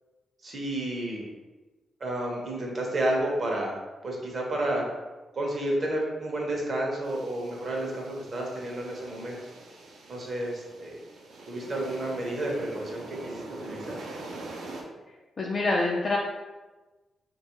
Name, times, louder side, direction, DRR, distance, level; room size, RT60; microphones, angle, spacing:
voice 1, 0.4-1.2 2.0-4.8 5.3-9.4 10.1-11.0 11.5-14.0, right 1 dB, 40° right, -1 dB, 0.6 m, -31 dB
sound 1, 7.0-14.8, right 2 dB, 85° right, 0.5 m, -44 dB
voice 2, 15.4-16.2, left 2 dB, 40° left, -3 dB, 0.3 m, -25 dB
3.0 x 2.3 x 2.9 m, 1.2 s
wide cardioid pair, 135°, 0 cm